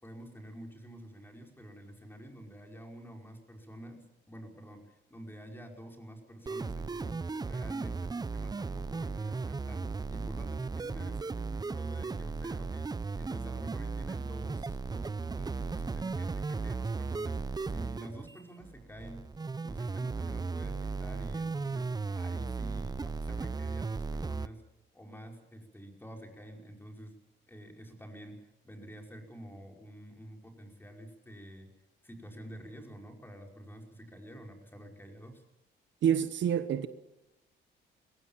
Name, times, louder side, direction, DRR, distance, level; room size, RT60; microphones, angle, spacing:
voice 1, 0.0-12.9 13.2-19.2 19.6-24.6 24.9-27.2 27.5-31.7 32.0-35.4, right 1 dB, 10° left, 5.3 m, -48 dB
sound 1, 6.5-24.5, right 4 dB, 20° right, 0.7 m, -36 dB
voice 2, 36.0-36.9, right 9 dB, 65° right, 1.2 m, -27 dB
22.5 x 16.5 x 7.4 m
cardioid pair, 90°, 20 cm